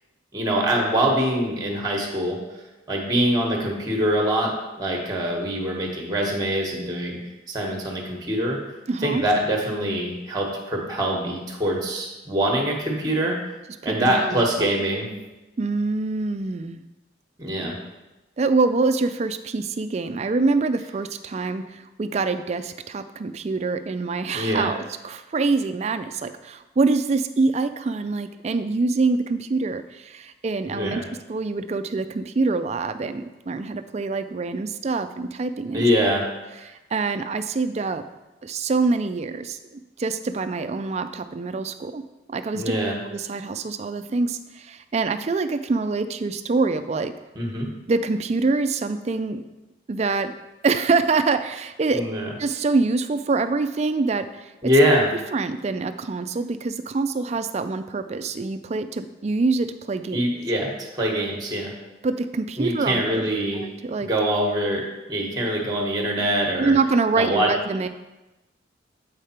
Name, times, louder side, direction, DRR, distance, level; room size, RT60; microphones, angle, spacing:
voice 1, 0.3-2.4 2.9-7.2 7.5-8.6 9.0-13.4 13.8-15.1 17.4-17.7 24.3-24.7 30.7-31.0 35.7-36.3 42.5-43.0 47.3-47.7 51.9-52.3 54.6-55.1 60.1-61.7 62.6-63.6 64.0-66.7 67.1-67.5, right 1 dB, 20° right, 0 dB, 1.1 m, -24 dB
voice 2, 8.9-9.2 13.8-14.7 15.6-16.8 18.4-31.0 31.3-35.9 36.6-38.0 38.4-42.0 42.3-42.7 43.1-47.1 47.9-49.4 49.9-50.3 50.6-52.0 52.4-54.7 55.3-60.2 62.0-63.2 63.5-64.1 66.6-67.9, right 3 dB, 35° right, 10 dB, 0.3 m, -25 dB
7.3 x 5.1 x 4.3 m, 1.0 s
head